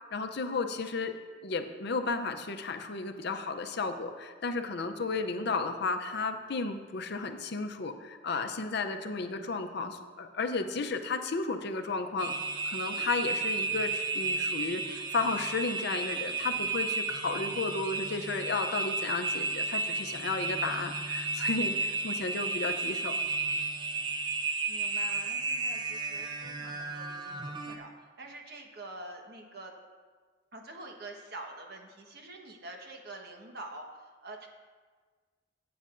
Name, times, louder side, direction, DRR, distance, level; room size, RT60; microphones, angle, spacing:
voice 1, 0.1-1.1 1.4-12.3 12.7-23.2, left 3 dB, 60° left, 7 dB, 0.6 m, -33 dB
sound 1, 12.2-27.8, right 3 dB, 25° right, 0.6 m, -33 dB
voice 2, 24.7-27.9 28.2-29.7 30.5-34.5, right 2 dB, 55° right, 2 dB, 1.3 m, -46 dB
15.5 x 8.6 x 2.6 m, 1.5 s
head